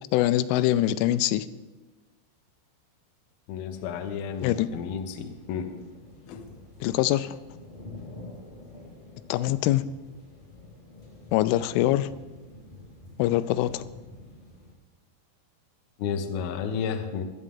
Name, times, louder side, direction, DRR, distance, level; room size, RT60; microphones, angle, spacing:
voice 1, 0.1-1.5 4.4-4.7 6.8-7.4 9.3-9.9 11.3-12.1 13.2-13.8, left 14 dB, 90° left, 14 dB, 3.1 m, -23 dB
voice 2, 3.5-5.8 6.3-6.5 16.0-17.2, left 7 dB, 75° left, 6 dB, 2.3 m, -32 dB
sound 1, 3.7-14.7, left 2 dB, 20° left, 1.5 m, -48 dB
17.5 x 12.5 x 3.7 m, 1.2 s
omnidirectional pair, 5.5 m